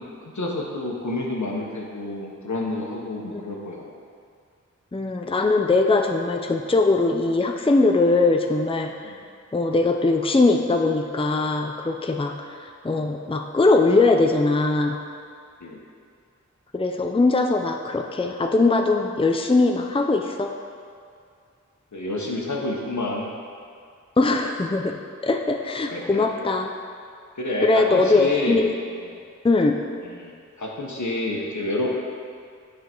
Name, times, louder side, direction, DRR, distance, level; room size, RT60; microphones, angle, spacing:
voice 1, 0.0-3.9 9.0-9.2 15.6-15.8 21.9-23.3 25.9-26.4 27.4-28.6 28.9-29.2 30.0-30.3 30.6-31.9, left 2 dB, 75° left, -2 dB, 1.2 m, -29 dB
voice 2, 4.9-8.9 9.5-15.0 16.7-20.5 24.2-26.7 27.6-28.7 29.4-29.8, left 3 dB, 20° left, 3 dB, 0.5 m, -21 dB
9.3 x 5.0 x 4.5 m, 2.3 s
wide cardioid pair, 50°, 30 cm